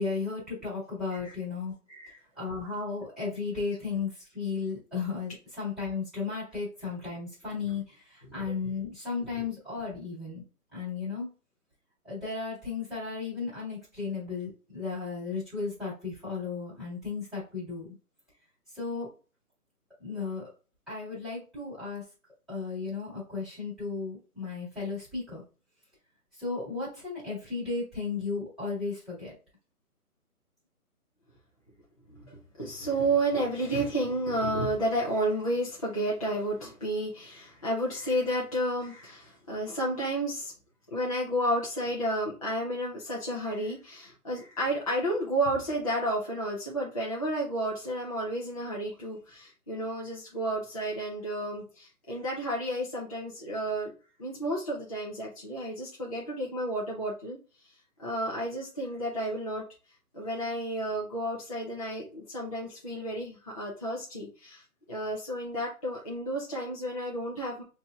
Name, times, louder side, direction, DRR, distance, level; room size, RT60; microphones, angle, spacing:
voice 1, 0.0-1.7 2.3-10.4 10.7-11.3 12.0-18.0 18.7-19.1 20.0-20.5 20.9-22.0 22.5-25.4 26.3-29.3, left 4 dB, ahead, -13 dB, 1.5 m, -34 dB
voice 2, 1.9-2.2 32.1-40.5 40.9-53.9 54.2-57.4 58.0-59.6 60.1-64.6 64.9-67.6, right 1 dB, 25° left, -5 dB, 0.6 m, -31 dB
5.4 x 2.8 x 2.3 m, 0.34 s
figure-of-eight pair, 155°, 45 cm